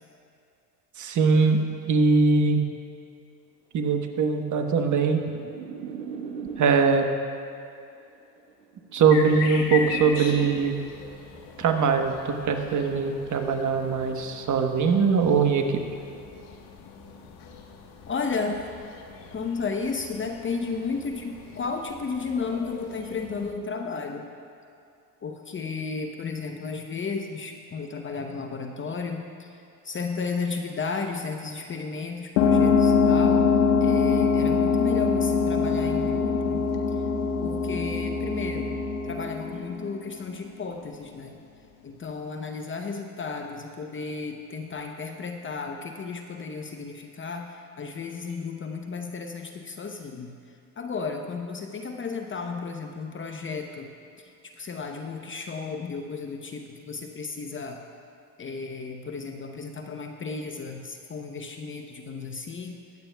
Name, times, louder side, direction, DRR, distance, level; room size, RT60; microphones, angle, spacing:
voice 1, 1.0-1.6 1.9-2.6 3.7-5.2 6.6-7.1 8.9-10.7 11.6-15.8, right 5 dB, 35° right, 5 dB, 1.1 m, -22 dB
sound 1, 4.1-7.1 8.1-11.1 12.1-12.5, right 6 dB, 85° right, 1.3 m, -39 dB
sound 2, 9.1-23.5, left 5 dB, 60° left, 1.3 m, -40 dB
voice 2, 18.1-18.7 19.3-24.3 25.2-33.5 33.8-36.6 37.4-38.8 39.0-41.4 41.8-50.3 50.8-53.9 54.2-57.8 58.4-62.8, left 4 dB, 25° left, 4 dB, 0.8 m, -33 dB
sound 3, 32.4-40.5, left 5 dB, 85° left, 1.0 m, -23 dB
22.0 x 8.8 x 2.3 m, 2.5 s
hypercardioid pair, 85°, 50 cm